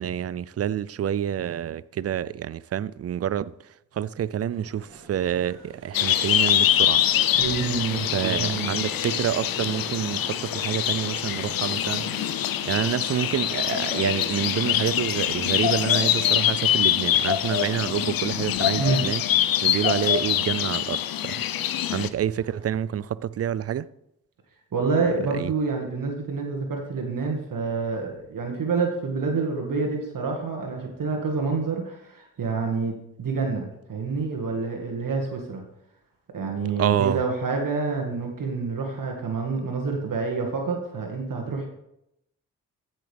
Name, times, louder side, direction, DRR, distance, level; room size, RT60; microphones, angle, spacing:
voice 1, 0.0-7.0 8.1-12.1 12.6-19.2 19.6-21.4 21.9-23.9 25.3-25.5 36.8-37.2, right 10 dB, 40° right, 0.5 m, -28 dB
Crowd, 4.5-22.8, right 3 dB, 90° right, 2.1 m, -45 dB
sound 1, 5.9-22.1, left 11 dB, 60° left, 0.7 m, -24 dB
voice 2, 7.4-8.8 18.8-19.1 24.7-35.6 36.3-41.7, right 4 dB, 55° right, 1.9 m, -27 dB
15.0 x 6.4 x 3.5 m
hypercardioid pair, 40°, 40 cm